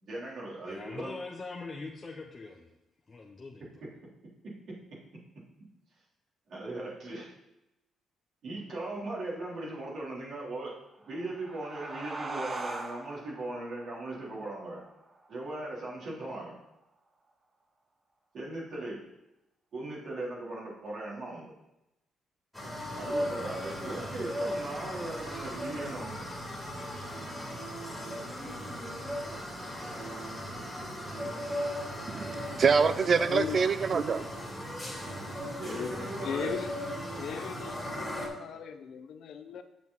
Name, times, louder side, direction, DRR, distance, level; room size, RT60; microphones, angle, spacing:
voice 1, 0.0-1.1 4.4-4.8 6.5-7.3 8.4-10.7 11.1-14.8 15.3-16.6 18.3-19.1 19.7-21.5 23.0-26.2 35.6-36.5, right 2 dB, 60° right, -5 dB, 3.4 m, -38 dB
voice 2, 0.7-2.7 3.1-3.9, left 3 dB, 30° left, -1 dB, 0.9 m, -42 dB
sound 1, 10.9-16.1, right 2 dB, 30° right, 0.9 m, -42 dB
sound 2, 22.5-38.3, equal, ahead, 2.4 m, -37 dB
voice 3, 32.1-34.3, right 5 dB, 45° right, 14 dB, 0.4 m, -25 dB
voice 4, 33.3-33.6 35.6-36.7 37.2-39.6, left 7 dB, 70° left, 8 dB, 0.7 m, -38 dB
7.4 x 7.2 x 4.1 m, 0.91 s
cardioid pair, 90°, 0 cm